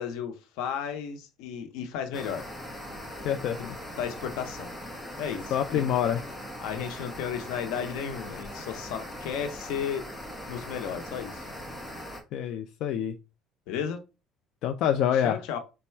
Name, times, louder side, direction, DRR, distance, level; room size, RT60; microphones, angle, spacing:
voice 1, 0.0-2.5 3.6-3.7 4.0-4.7 5.2-5.9 6.6-10.1 10.5-11.5 13.7-14.0 15.2-15.6, left 8 dB, 80° left, 0.8 m, -34 dB
sound 1, 2.1-12.2, left 1 dB, 10° left, 0.9 m, -40 dB
voice 2, 3.2-3.6 5.5-6.2 12.3-13.2 14.6-15.4, left 9 dB, 55° left, 0.3 m, -26 dB
4.1 x 2.2 x 4.3 m
cardioid pair, 170°, 0 cm